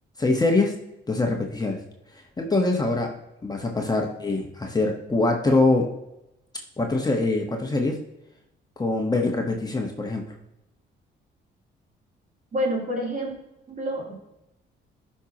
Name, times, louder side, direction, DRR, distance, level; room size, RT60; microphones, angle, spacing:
voice 1, 0.2-0.7 1.1-1.8 2.4-3.1 3.4-5.9 6.8-8.0 8.8-10.2, left 2 dB, 20° left, 1 dB, 1.4 m, -23 dB
voice 2, 12.5-13.4 13.7-14.1, equal, 45° right, -2 dB, 3.3 m, -28 dB
12.5 x 5.7 x 3.0 m, 0.88 s
cardioid pair, 90°, 20 cm